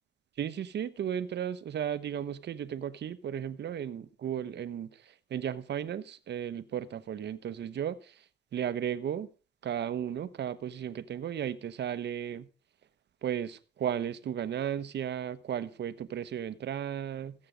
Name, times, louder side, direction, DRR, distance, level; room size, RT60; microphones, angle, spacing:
voice 1, 0.4-8.2 8.5-9.3 9.6-12.5 13.2-17.3, right 9 dB, 60° right, 1.1 m, -35 dB
15.0 x 8.6 x 5.1 m
cardioid pair, 90°, 20 cm